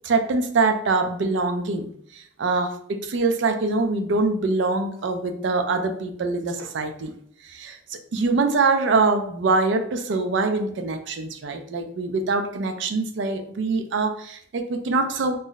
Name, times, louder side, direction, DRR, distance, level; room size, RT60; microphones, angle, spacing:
voice 1, 0.0-7.1 7.4-15.4, right 3 dB, 65° right, 0.4 m, -24 dB
2.5 x 2.0 x 3.8 m
head